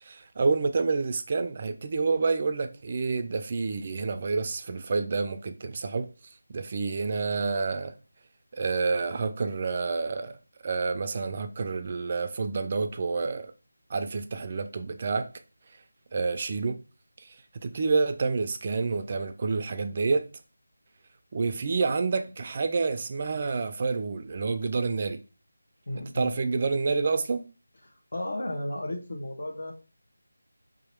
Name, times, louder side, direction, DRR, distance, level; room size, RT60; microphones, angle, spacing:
voice 1, 0.0-6.1 6.5-7.9 8.5-10.4 10.6-13.5 13.9-15.3 16.1-16.8 17.2-20.3 21.3-25.2 26.1-27.5, right 4 dB, 35° right, 0.3 m, -28 dB
voice 2, 25.9-26.3 27.8-29.7, left 1 dB, 60° left, 1.1 m, -34 dB
2.8 x 2.5 x 4.3 m
figure-of-eight pair, 170°, 0 cm